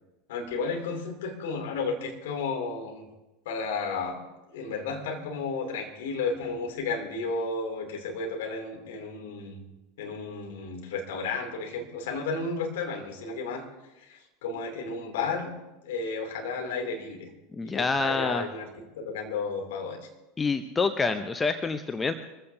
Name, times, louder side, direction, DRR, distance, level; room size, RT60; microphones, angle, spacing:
voice 1, 0.3-3.1 3.4-9.6 10.0-13.7 14.0-15.5 15.8-17.3 17.6-18.7 18.9-20.0, left 4 dB, 60° left, 1 dB, 2.8 m, -33 dB
voice 2, 17.5-18.5 20.4-22.1, left 4 dB, 15° left, 9 dB, 0.7 m, -27 dB
23.0 x 15.0 x 2.7 m, 1.0 s
figure-of-eight pair, 80°, 0 cm